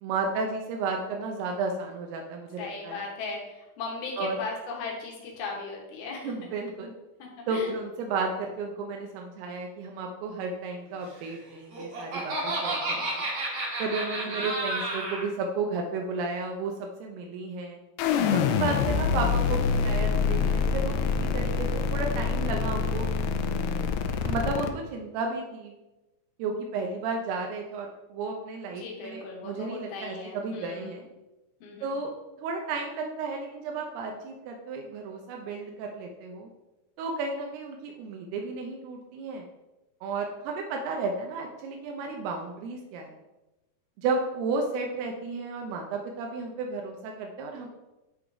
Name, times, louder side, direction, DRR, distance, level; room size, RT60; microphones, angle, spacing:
voice 1, 0.0-3.1 4.2-4.4 6.2-6.9 7.5-13.2 13.8-17.8 18.3-23.1 24.2-25.7 26.4-31.1 31.8-32.1 32.4-36.5 37.0-39.4 40.0-43.1 44.0-47.7, right 3 dB, 85° right, 2 dB, 2.7 m, -33 dB
voice 2, 2.6-6.3 7.2-7.7 14.1-14.5 28.8-31.0 31.6-32.0, left 3 dB, 75° left, -1 dB, 3.2 m, -37 dB
Laughter, 11.5-15.3, right 2 dB, 55° right, 2.0 m, -31 dB
sound 1, 18.0-24.7, left 6 dB, 90° left, 2.6 m, -26 dB
9.3 x 3.8 x 4.8 m, 1.0 s
omnidirectional pair, 4.5 m